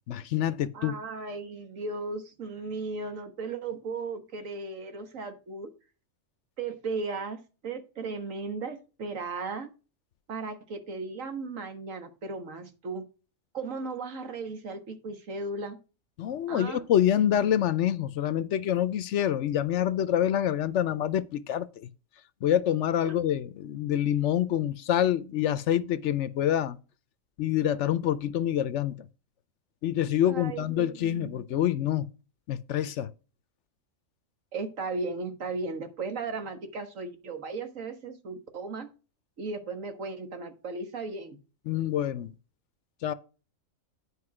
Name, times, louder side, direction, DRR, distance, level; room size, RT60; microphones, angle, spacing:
voice 1, 0.1-1.0 16.2-21.9 22.4-26.8 27.4-29.0 29.8-32.1 32.5-33.1 41.7-42.3 43.0-43.1, left 11 dB, 65° left, 0.9 m, -26 dB
voice 2, 0.7-5.7 6.6-9.7 10.3-13.1 13.5-15.8 16.5-16.8 23.0-23.1 30.2-31.4 34.5-38.9 39.4-41.4, right 3 dB, 75° right, 1.7 m, -36 dB
9.8 x 5.0 x 4.8 m
omnidirectional pair, 1.4 m